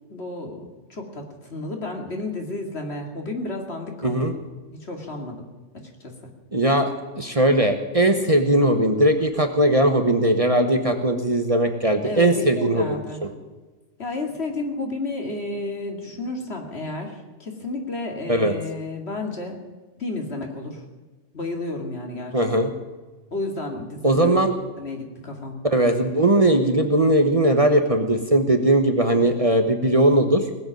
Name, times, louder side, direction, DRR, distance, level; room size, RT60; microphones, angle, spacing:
voice 1, 0.1-4.3 4.7-5.4 5.7-6.3 12.0-13.2 14.0-19.6 20.0-20.8 21.3-22.4 23.3-24.3 24.8-25.6, left 2 dB, 55° left, 3 dB, 2.7 m, -32 dB
voice 2, 4.0-4.3 6.5-12.9 18.3-18.6 22.3-22.7 24.0-24.5 25.7-30.4, right 1 dB, 30° right, 6 dB, 1.2 m, -19 dB
19.5 x 8.1 x 9.2 m, 1.3 s
omnidirectional pair, 1.3 m